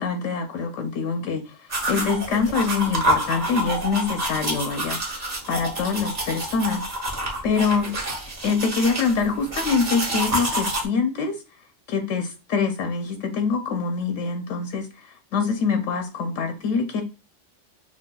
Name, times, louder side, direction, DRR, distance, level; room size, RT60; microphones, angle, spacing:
voice 1, 0.0-6.8 7.1-7.9 8.4-11.4 11.9-17.0, left 5 dB, 80° left, 5 dB, 0.9 m, -25 dB
sound 1, 1.7-10.9, right 1 dB, 35° right, 0.9 m, -28 dB
6.1 x 2.3 x 2.2 m, 0.33 s
omnidirectional pair, 1.3 m